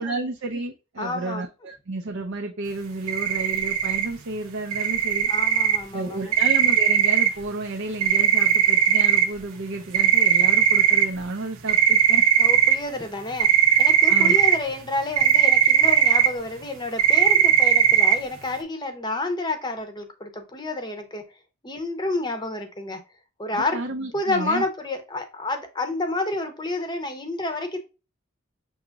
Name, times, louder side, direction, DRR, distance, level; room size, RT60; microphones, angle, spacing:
voice 1, 0.0-5.3 5.9-12.3 14.1-14.4 23.5-24.6, right 2 dB, 60° right, 0.5 m, -31 dB
voice 2, 1.0-1.4 5.3-6.3 12.4-21.2 21.6-23.0 23.4-23.8 24.1-27.8, left 2 dB, 20° left, 0.7 m, -29 dB
sound 1, 3.1-4.1 4.7-5.8 6.3-7.3 8.0-9.2 9.9-11.0 11.7-12.7 13.4-14.6 15.2-16.3 16.6-16.7 17.0-18.1, right 8 dB, 90° right, 0.9 m, -18 dB
6.2 x 2.9 x 2.3 m
head